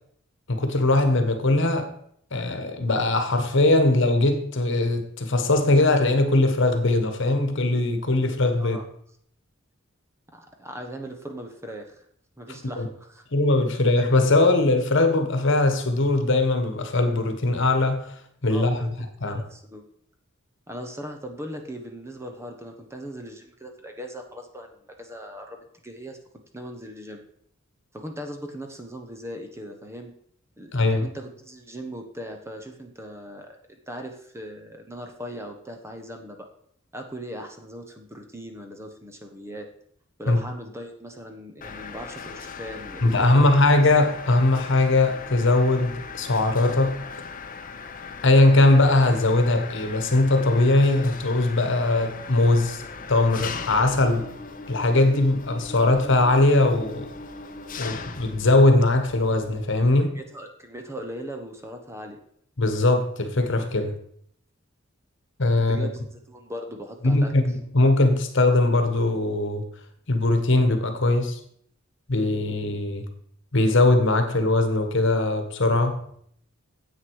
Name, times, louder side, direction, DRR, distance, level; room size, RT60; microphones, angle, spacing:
voice 1, 0.5-2.0 2.3-8.8 12.8-12.9 13.3-18.1 18.4-18.9 19.2-19.4 30.7-31.1 40.3-40.4 43.0-47.0 48.2-54.3 54.7-57.1 57.8-60.1 62.6-63.9 65.4-65.9 67.0-69.7 70.1-71.4 72.1-73.1 73.5-76.0, left 2 dB, 65° left, 1.4 m, -20 dB
voice 2, 10.3-12.0 12.4-13.2 18.5-19.9 20.7-25.6 25.8-26.2 26.5-27.2 27.9-30.1 30.6-36.5 36.9-39.7 40.2-43.6 60.1-62.2 65.7-67.3, equal, 15° right, 1.2 m, -39 dB
Mechanisms, 41.6-59.6, left 5 dB, 40° left, 0.8 m, -39 dB
9.8 x 8.1 x 4.8 m
head